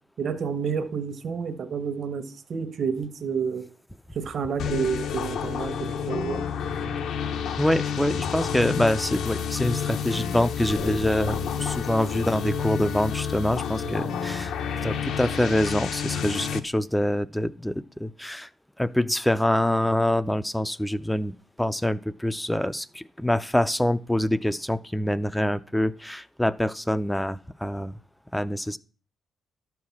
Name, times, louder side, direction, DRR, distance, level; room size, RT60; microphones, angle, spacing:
voice 1, 0.2-3.7 4.1-6.4, right 6 dB, 55° right, 10 dB, 1.3 m, -29 dB
sound 1, 4.6-16.6, left 7 dB, 75° left, 0.9 m, -29 dB
voice 2, 7.6-14.5 14.8-18.5 18.8-27.9 28.3-28.8, left 1 dB, 5° left, 13 dB, 0.4 m, -25 dB
11.5 x 4.8 x 7.2 m, 0.40 s
cardioid pair, 90°, 0 cm